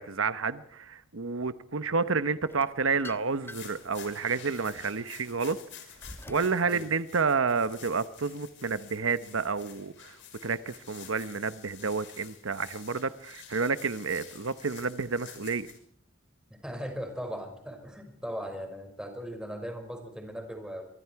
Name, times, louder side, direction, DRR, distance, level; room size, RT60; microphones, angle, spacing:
voice 1, 0.0-5.6 6.3-10.2 10.4-15.7, right 4 dB, 80° right, 13 dB, 1.0 m, -30 dB
sound 1, 2.5-3.8 4.4-6.6, left 1 dB, 10° left, 1.1 m, -47 dB
sound 2, 3.3-15.8, left 9 dB, 65° left, 6.1 m, -50 dB
voice 2, 16.6-20.8, equal, 5° right, 5 dB, 5.6 m, -38 dB
24.5 x 24.5 x 4.7 m, 0.63 s
head